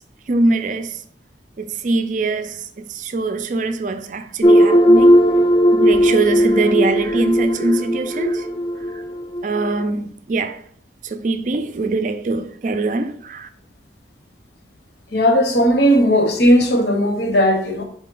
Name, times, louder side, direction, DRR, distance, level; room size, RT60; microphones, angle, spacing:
voice 1, 0.3-1.0 1.6-5.2 5.7-8.5 8.9-9.0 9.4-10.6 11.0-13.5, right 3 dB, 45° right, 0.4 m, -22 dB
sound 1, 4.4-9.8, equal, 25° left, 0.4 m, -16 dB
voice 2, 15.1-17.8, equal, 70° left, 0.9 m, -16 dB
4.3 x 3.3 x 3.7 m
head